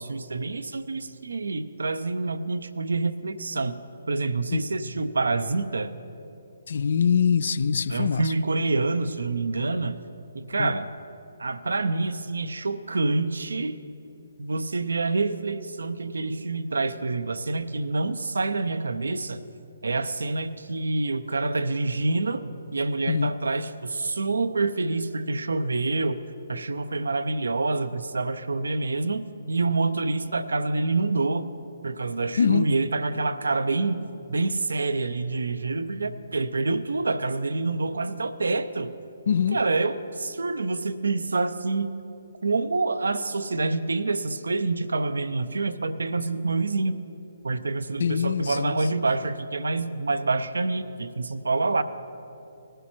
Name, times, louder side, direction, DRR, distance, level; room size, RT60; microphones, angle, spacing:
voice 1, 0.0-3.7 4.1-5.9 7.9-10.0 10.3-10.9 11.4-13.8 14.4-19.4 19.8-22.4 22.7-26.2 26.5-31.5 31.8-38.9 39.5-41.9 42.4-47.0 47.4-51.8, right 3 dB, 75° right, 0.5 m, -27 dB
voice 2, 6.7-8.2 10.6-10.7 23.1-23.3 32.4-32.7 39.3-39.6 48.0-48.8, left 7 dB, 60° left, 0.3 m, -23 dB
18.5 x 11.0 x 3.0 m
figure-of-eight pair, 140°, 0 cm